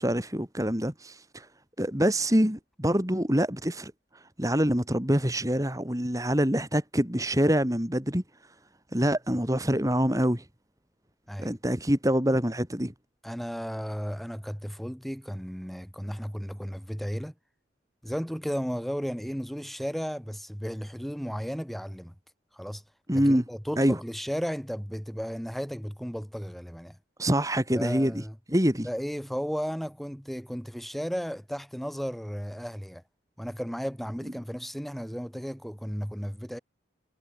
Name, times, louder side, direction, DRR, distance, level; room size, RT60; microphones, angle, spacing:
voice 1, 0.0-1.5 1.8-3.9 4.4-8.2 8.9-10.4 11.4-12.9 23.1-23.4 23.8-24.0 27.2-28.2 28.5-28.9, equal, 20° right, 3.8 m, -25 dB
voice 2, 13.2-17.3 18.0-22.1 22.5-22.8 23.1-27.0 27.7-28.4 28.8-33.0 33.4-36.6, equal, ahead, 5.0 m, -34 dB
head